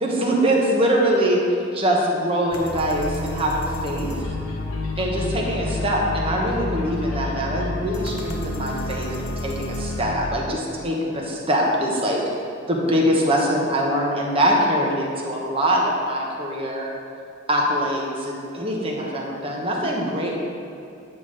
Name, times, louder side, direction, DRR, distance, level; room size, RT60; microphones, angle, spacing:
voice 1, 0.0-4.1 5.0-12.2 12.7-16.9 17.5-20.4, equal, 25° right, -2 dB, 1.1 m, -23 dB
sound 1, 2.5-10.3, left 2 dB, 85° left, 0.8 m, -29 dB
9.4 x 3.7 x 6.5 m, 2.7 s
head